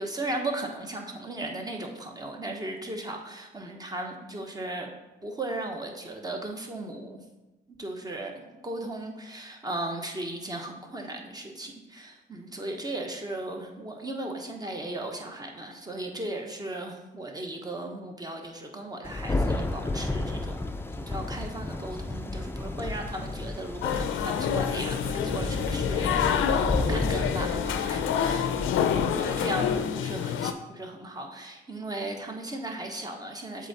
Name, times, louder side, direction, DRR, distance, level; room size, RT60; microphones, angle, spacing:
voice 1, 0.0-4.9 5.2-7.2 7.7-20.6 20.9-33.7, right 1 dB, 20° right, 2 dB, 1.1 m, -36 dB
Thunder, 19.0-29.8, left 2 dB, 10° left, 0.5 m, -32 dB
sound 1, 23.8-30.5, left 8 dB, 80° left, 0.5 m, -27 dB
7.4 x 3.8 x 4.2 m, 1.1 s
cardioid pair, 90°, 20 cm